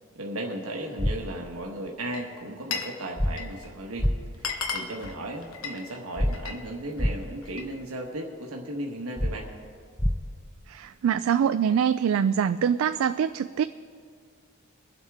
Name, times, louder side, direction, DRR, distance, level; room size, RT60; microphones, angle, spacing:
voice 1, 0.1-9.5, right 1 dB, 90° right, 1 dB, 1.2 m, -36 dB
sound 1, 1.0-1.1 3.2-3.3 4.0-4.1 6.2-6.3 7.0-7.1 9.2-9.3 10.0-10.1, equal, 5° left, 0.4 m, -23 dB
Glass, 2.0-3.0 3.2-3.7 4.0-4.1 4.3-6.6 7.0-7.7, left 5 dB, 70° left, 1.1 m, -35 dB
voice 2, 10.7-13.6, right 8 dB, 70° right, 11 dB, 0.3 m, -24 dB
23.5 x 8.0 x 3.5 m, 2.1 s
head